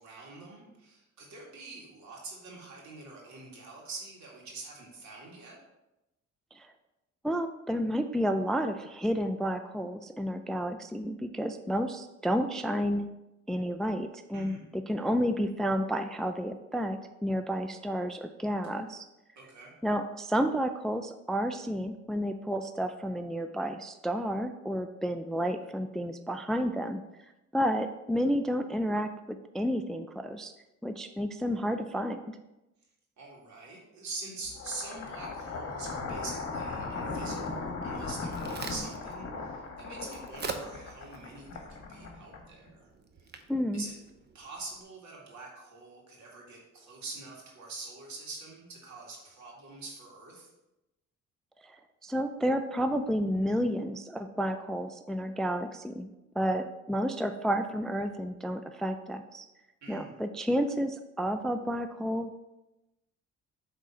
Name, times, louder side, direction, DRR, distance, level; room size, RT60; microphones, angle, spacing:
voice 1, 0.0-5.6 14.3-14.6 19.4-19.7 33.2-42.9 43.2-43.3 43.7-43.9 44.3-50.5 59.8-60.1, right 3 dB, 70° right, -2 dB, 2.3 m, -45 dB
voice 2, 7.2-13.1 13.5-19.1 19.8-27.0 27.5-30.5 30.8-32.3 43.5-43.9 51.6-56.1 56.4-59.5 59.9-62.4, equal, ahead, 7 dB, 0.3 m, -31 dB
sound 1, 34.5-42.7, left 3 dB, 55° left, 1.3 m, -38 dB
Crack, 37.9-44.8, right 4 dB, 35° right, 0.8 m, -45 dB
8.1 x 3.7 x 4.4 m, 0.96 s
cardioid pair, 90°, 30 cm